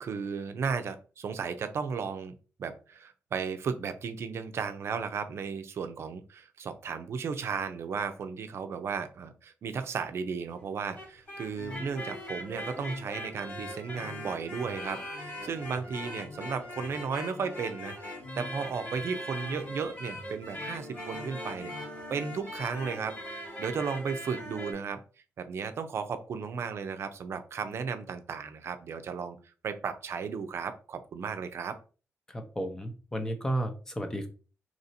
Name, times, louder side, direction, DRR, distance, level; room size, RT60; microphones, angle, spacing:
voice 1, 0.0-2.3 2.6-21.7 22.1-25.0 25.4-29.4 29.6-31.8, right 6 dB, 55° right, 9 dB, 0.5 m, -35 dB
sound 1, 10.8-24.7, equal, 30° left, 1.1 m, -40 dB
voice 2, 32.3-34.3, right 1 dB, 10° left, 6 dB, 0.6 m, -33 dB
2.9 x 2.6 x 4.2 m, 0.35 s
wide cardioid pair, 165°, 5 cm